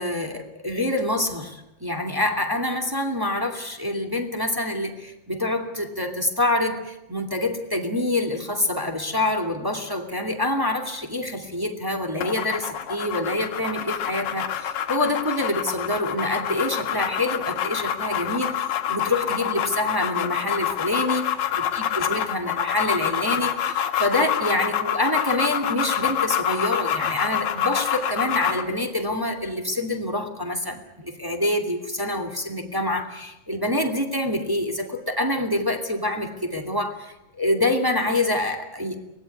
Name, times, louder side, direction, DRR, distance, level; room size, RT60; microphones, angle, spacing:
voice 1, 0.0-21.2 21.5-39.0, left 1 dB, 10° right, 4 dB, 1.9 m, -26 dB
sound 1, 12.2-28.7, left 9 dB, 80° left, 3.1 m, -27 dB
24.0 x 19.0 x 9.4 m, 0.93 s
omnidirectional pair, 3.9 m